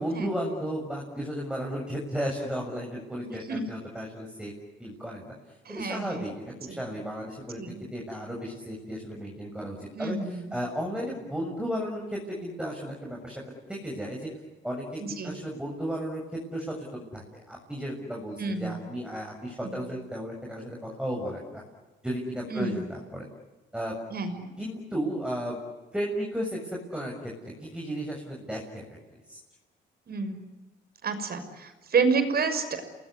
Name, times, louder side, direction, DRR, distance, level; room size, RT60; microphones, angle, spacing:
voice 1, 0.0-4.5 4.8-5.3 5.7-7.6 7.9-13.4 13.7-14.3 14.6-21.6 22.0-23.3 23.7-24.0 24.6-25.6 25.9-27.3 27.6-29.0 29.3-29.4, equal, 5° right, -1 dB, 7.1 m, -34 dB
voice 2, 3.2-3.6 5.7-6.3 6.6-6.8 7.6-7.7 9.9-10.5 15.0-15.4 18.4-18.8 19.6-19.8 22.5-22.8 24.1-24.5 30.1-30.4 31.0-32.8, right 4 dB, 50° right, 8 dB, 6.1 m, -29 dB
29.5 x 20.5 x 9.8 m, 1.2 s
cardioid pair, 90°, 20 cm